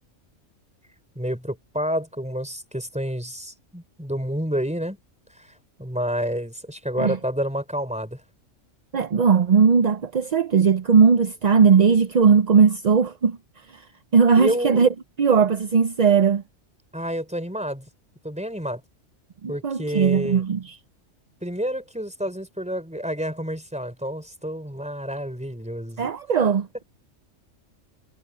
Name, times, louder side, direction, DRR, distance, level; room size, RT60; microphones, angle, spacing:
voice 1, 1.1-5.0 5.3-8.2 14.4-14.8 16.9-17.9 18.2-18.8 19.5-20.4 21.4-26.1, equal, 5° right, 4.2 m, -29 dB
voice 2, 8.9-13.4 13.7-13.8 14.1-14.9 15.2-16.4 19.4-20.7 26.0-26.8, right 6 dB, 45° right, 0.5 m, -18 dB
omnidirectional pair, 1.3 m